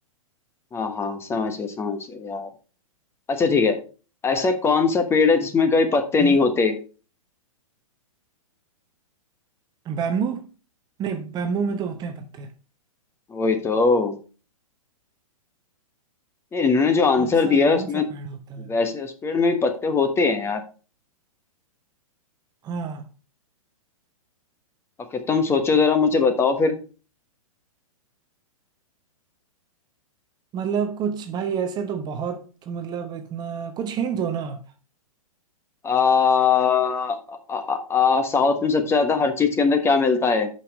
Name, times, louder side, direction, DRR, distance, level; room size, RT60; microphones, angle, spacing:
voice 1, 0.7-2.5 3.3-3.8 4.2-6.8 13.3-14.2 16.5-18.1 18.7-20.6 25.1-26.7 35.8-40.5, left 4 dB, 15° left, 1.2 m, -21 dB
voice 2, 9.9-10.5 11.0-12.5 17.2-18.7 22.6-23.1 30.5-34.6, right 6 dB, 25° right, 0.9 m, -29 dB
8.5 x 5.6 x 5.0 m
figure-of-eight pair, 110°, 18 cm